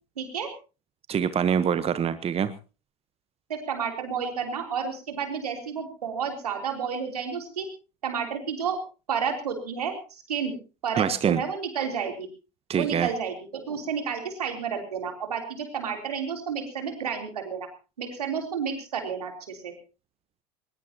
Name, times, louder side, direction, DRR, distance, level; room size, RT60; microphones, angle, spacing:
voice 1, 0.2-0.5 3.5-7.6 8.0-8.8 9.1-10.6 10.8-12.3 12.8-17.7 18.0-19.7, right 6 dB, 85° right, 4 dB, 3.5 m, -31 dB
voice 2, 1.1-2.5 10.9-11.4 12.7-13.1, right 8 dB, 30° right, 13 dB, 1.1 m, -24 dB
20.5 x 20.0 x 2.9 m, 0.33 s
hypercardioid pair, 75°, 19 cm